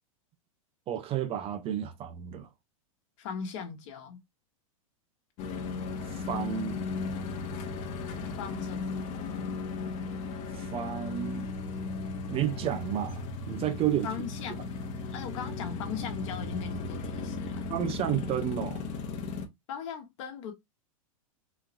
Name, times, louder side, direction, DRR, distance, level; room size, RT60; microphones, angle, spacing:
voice 1, 0.9-2.5 6.1-6.9 10.6-11.5 12.3-14.1 17.7-18.8, right 10 dB, 30° right, 0.7 m, -31 dB
voice 2, 3.2-4.2 8.4-9.0 14.0-14.8 15.1-17.7 19.7-20.5, left 7 dB, 60° left, 1.3 m, -39 dB
sound 1, 5.4-19.5, left 4 dB, 45° left, 1.0 m, -36 dB
4.0 x 2.9 x 2.5 m
hypercardioid pair, 105°, 18 cm